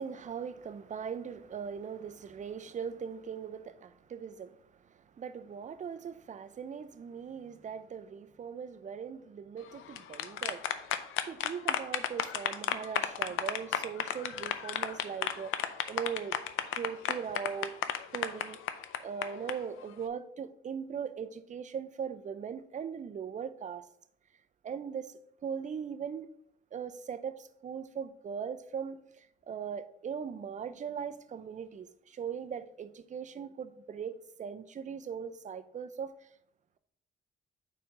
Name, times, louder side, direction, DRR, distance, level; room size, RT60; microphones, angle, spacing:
voice 1, 0.0-10.6 11.3-15.5 15.9-16.4 16.7-17.7 18.1-18.6 19.0-23.9 24.6-26.3 26.7-36.3, right 7 dB, 40° right, 0.5 m, -40 dB
sound 1, 9.8-19.5, left 11 dB, 85° left, 0.5 m, -33 dB
5.0 x 4.4 x 5.0 m
cardioid pair, 90°, 20 cm